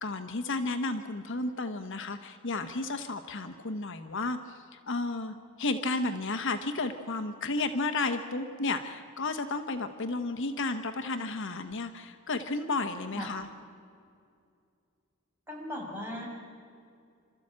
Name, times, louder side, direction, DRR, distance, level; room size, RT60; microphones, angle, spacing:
voice 1, 0.0-13.5, left 3 dB, 60° left, 7 dB, 1.1 m, -32 dB
voice 2, 15.5-16.3, left 1 dB, 10° right, -3 dB, 5.4 m, -38 dB
27.0 x 13.5 x 8.8 m, 2.4 s
head